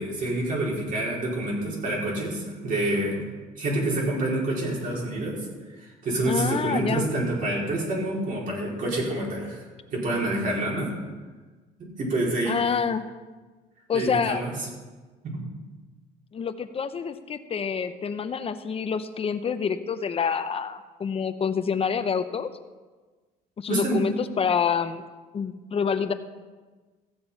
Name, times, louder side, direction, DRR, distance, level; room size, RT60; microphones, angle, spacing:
voice 1, 0.0-3.2 3.6-5.3 5.8-9.6 9.9-10.9 12.0-12.6 13.9-14.5 15.2-15.4 23.7-24.0, right 2 dB, 55° right, -4 dB, 4.7 m, -27 dB
voice 2, 6.2-7.1 12.5-13.1 13.9-14.4 16.3-22.5 23.6-25.0 25.3-26.1, left 6 dB, 35° left, 11 dB, 0.8 m, -27 dB
15.0 x 7.6 x 5.7 m, 1.3 s
cardioid pair, 110°, 17 cm